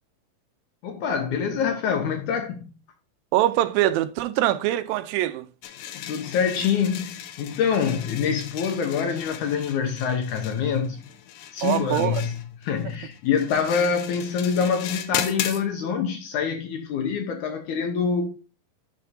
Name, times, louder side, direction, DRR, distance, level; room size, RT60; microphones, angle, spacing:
voice 1, 0.8-2.7 6.0-11.0 11.5-18.3, left 6 dB, 70° left, 2.0 m, -25 dB
voice 2, 3.3-5.5 11.6-12.2, right 14 dB, 90° right, 2.4 m, -23 dB
sound 1, 5.6-15.6, left 11 dB, 85° left, 2.5 m, -36 dB
11.5 x 5.8 x 2.6 m
omnidirectional pair, 4.1 m